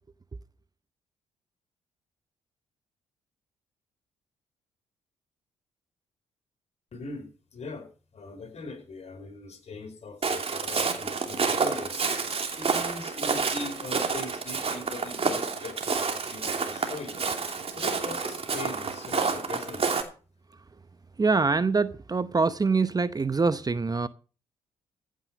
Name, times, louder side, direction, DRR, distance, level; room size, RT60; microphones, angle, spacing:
voice 1, 6.9-7.9 8.1-12.1 12.6-17.3 17.7-19.9, left 3 dB, 50° left, 4.9 m, -40 dB
Walk footsteps, 10.2-20.0, right 5 dB, 45° right, 2.8 m, -29 dB
voice 2, 21.2-24.1, right 4 dB, 25° right, 0.8 m, -24 dB
15.0 x 7.6 x 6.3 m
hypercardioid pair, 50°, 14 cm